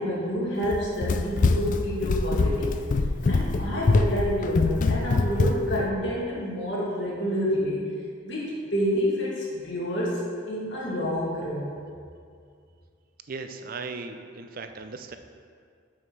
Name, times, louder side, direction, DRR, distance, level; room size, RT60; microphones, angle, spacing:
voice 1, 0.0-2.8 3.3-7.8 8.2-10.2 10.5-11.7, equal, 60° left, -6 dB, 2.3 m, -28 dB
Run, 0.6-5.9, left 3 dB, 40° left, 0.3 m, -24 dB
voice 2, 13.3-15.2, right 4 dB, 45° right, 7 dB, 0.5 m, -37 dB
6.4 x 6.3 x 6.0 m, 2.3 s
head